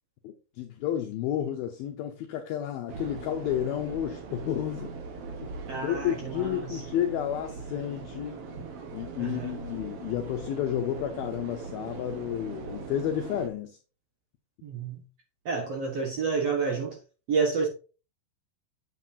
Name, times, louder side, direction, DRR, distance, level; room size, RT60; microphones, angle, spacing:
voice 1, 0.2-4.9 5.8-8.4 8.9-13.8, left 11 dB, 75° left, 2.4 m, -31 dB
sound 1, 2.9-13.5, right 4 dB, 80° right, 1.3 m, -40 dB
voice 2, 5.7-6.8 9.2-9.5 14.6-15.0 15.4-17.0 17.3-17.7, right 5 dB, 60° right, 1.7 m, -29 dB
8.3 x 7.8 x 2.8 m
omnidirectional pair, 4.8 m